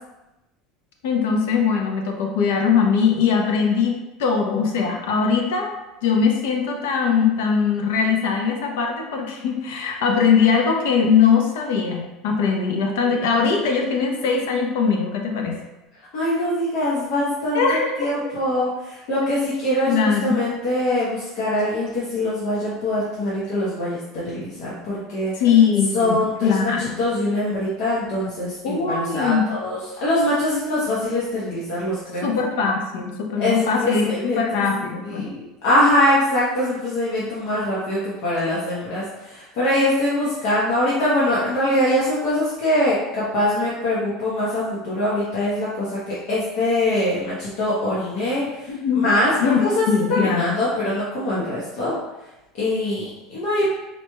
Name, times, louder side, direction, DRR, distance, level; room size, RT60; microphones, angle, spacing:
voice 1, 1.0-5.7 6.0-15.6 17.5-17.9 19.9-20.4 25.4-26.2 26.4-27.0 28.6-29.5 32.2-34.1 34.4-35.3 48.7-49.0 49.4-50.6, left 6 dB, 90° left, 2 dB, 0.7 m, -21 dB
voice 2, 16.1-25.3 25.9-32.3 33.4-34.7 35.0-52.0 52.6-53.8, left 1 dB, 60° left, -8 dB, 0.9 m, -23 dB
4.2 x 3.0 x 2.2 m, 0.98 s
cardioid pair, 165°, 0 cm